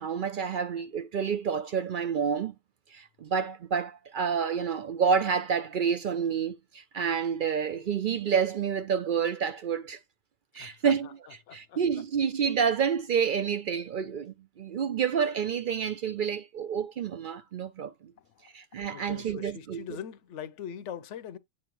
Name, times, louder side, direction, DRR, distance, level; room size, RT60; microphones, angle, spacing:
voice 1, 0.0-2.5 2.9-10.0 10.5-18.1 18.5-19.9, right 7 dB, 60° right, 0.6 m, -29 dB
voice 2, 10.6-10.9 11.5-11.8 18.9-21.4, left 9 dB, 85° left, 1.0 m, -41 dB
8.7 x 4.2 x 3.0 m
omnidirectional pair, 1.2 m